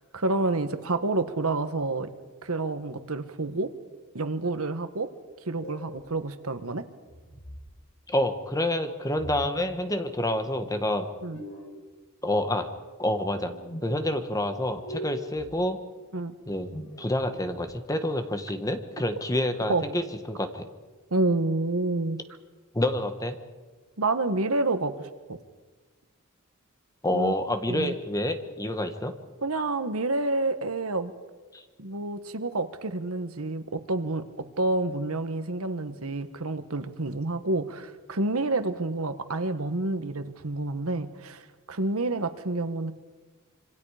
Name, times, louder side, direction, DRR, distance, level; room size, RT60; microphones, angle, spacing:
voice 1, 0.1-2.1 2.4-3.7 4.1-5.1 5.4-6.8 11.2-11.4 16.1-16.3 19.7-19.8 21.1-22.2 24.0-25.4 27.1-27.3 27.7-27.9 29.4-31.1 31.8-34.2 34.6-42.9, right 2 dB, 80° right, 10 dB, 1.5 m, -28 dB
sound 1, 5.4-6.0 7.1-7.7 9.1-9.7 11.1-11.8 13.1-13.9 14.6-15.5 16.4-17.7, equal, 70° left, 5.6 m, -42 dB
voice 2, 8.1-11.1 12.2-12.7 13.0-13.5 13.8-15.8 16.5-16.7 17.0-20.7 22.7-23.4 27.0-29.1 31.5-31.6, left 1 dB, 15° left, 7 dB, 1.5 m, -28 dB
26.5 x 26.0 x 5.1 m, 1.3 s
head